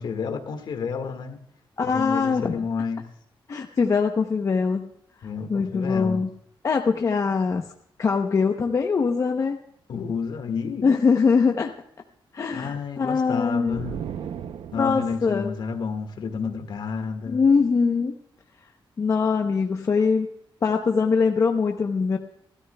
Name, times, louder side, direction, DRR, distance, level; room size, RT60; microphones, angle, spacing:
voice 1, 0.0-1.4 1.8-3.1 5.2-6.2 9.9-10.9 12.5-14.0 14.7-17.4, left 5 dB, 60° left, 1.8 m, -30 dB
voice 2, 1.8-2.7 3.5-4.9 5.5-6.3 6.6-7.6 8.0-9.6 10.8-11.7 12.3-13.8 14.7-15.5 17.3-18.1 19.0-20.3 20.6-22.2, left 5 dB, 35° left, 0.8 m, -22 dB
sound 1, 13.7-15.2, right 8 dB, 75° right, 0.7 m, -35 dB
28.0 x 13.0 x 2.3 m
wide cardioid pair, 175°, 9 cm